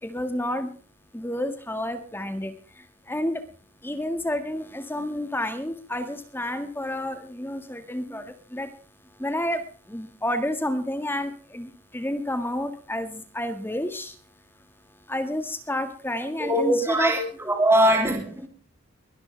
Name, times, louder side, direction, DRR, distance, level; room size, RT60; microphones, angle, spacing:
voice 1, 0.0-0.7 1.1-3.4 3.8-8.7 9.2-14.2 15.1-17.1, left 1 dB, 10° left, 1.8 m, -30 dB
voice 2, 16.4-18.5, right 1 dB, 10° right, 3.1 m, -22 dB
22.5 x 12.0 x 3.4 m
head